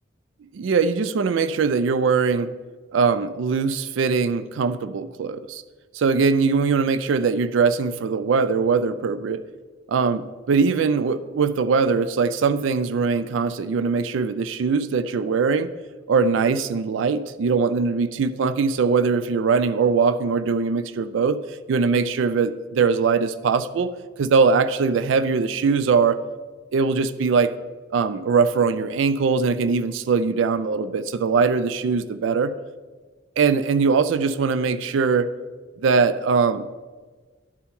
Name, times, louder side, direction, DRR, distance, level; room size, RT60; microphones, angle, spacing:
voice 1, 0.5-2.5 2.9-5.6 5.9-9.4 9.9-15.7 16.1-21.4 21.7-23.9 24.2-26.2 26.7-27.5 27.9-32.5 33.4-35.3 35.8-36.7, right 5 dB, 70° right, 13 dB, 0.4 m, -21 dB
11.0 x 4.4 x 5.4 m, 1.4 s
head